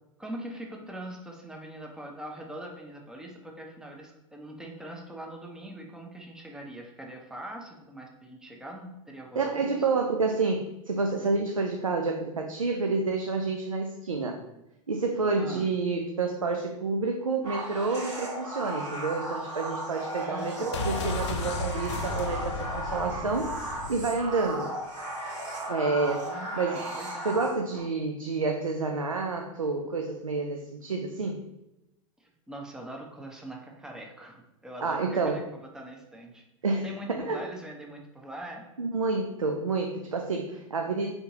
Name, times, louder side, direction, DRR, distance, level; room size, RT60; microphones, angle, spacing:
voice 1, 0.2-9.9 15.4-15.7 20.2-20.8 26.3-27.5 32.2-36.4 36.8-38.7, right 1 dB, 5° right, 1 dB, 0.6 m, -42 dB
voice 2, 9.4-14.4 14.9-24.7 25.7-26.8 27.2-31.5 34.8-35.4 36.6-37.4 38.8-41.1, right 3 dB, 90° right, 3 dB, 0.4 m, -29 dB
sound 1, 17.4-27.8, right 1 dB, 70° right, 1.4 m, -36 dB
sound 2, 20.7-24.5 24.8-24.9, left 4 dB, 60° left, 0.5 m, -35 dB
3.8 x 3.5 x 2.9 m, 0.93 s
figure-of-eight pair, 90°, 17 cm